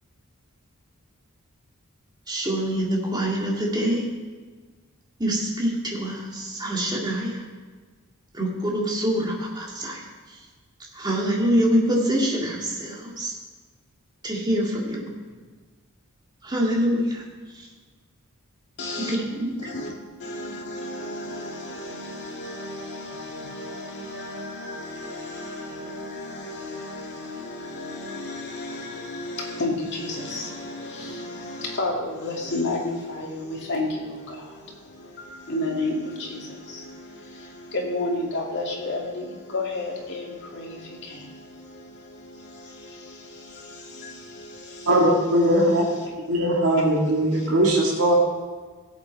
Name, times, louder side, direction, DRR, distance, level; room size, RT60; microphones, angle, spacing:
voice 1, 2.3-4.0 5.2-7.3 8.4-10.0 11.0-13.3 14.2-15.1 16.4-17.2 19.1-19.5, equal, 20° right, -2 dB, 2.0 m, -25 dB
voice 2, 18.8-19.2 19.6-19.9 20.2-45.2 45.6-46.1 47.3-47.5, left 2 dB, 50° left, -2 dB, 2.4 m, -33 dB
voice 3, 44.9-45.8 46.3-48.1, right 1 dB, 65° right, -4 dB, 2.0 m, -20 dB
16.5 x 8.0 x 4.0 m, 1.4 s
head